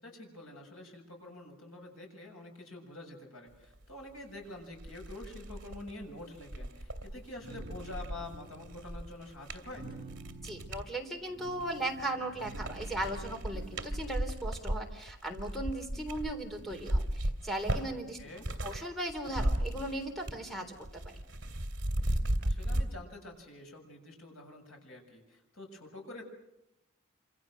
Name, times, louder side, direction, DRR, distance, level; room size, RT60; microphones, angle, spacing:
voice 1, 0.0-9.9 18.0-18.4 22.4-26.2, left 2 dB, 75° left, 1 dB, 7.5 m, -47 dB
sound 1, 4.2-4.3 4.7-10.9 11.5-12.1 12.4-18.8 19.1-20.5 20.8-22.9, right 1 dB, 60° right, 2.5 m, -35 dB
sound 2, 7.2-9.0 9.7-10.8 11.2-14.1, right 2 dB, 25° right, 5.4 m, -50 dB
voice 2, 10.4-18.2 18.6-21.2, right 1 dB, ahead, 4 dB, 3.5 m, -37 dB
27.5 x 26.5 x 6.5 m, 0.87 s
head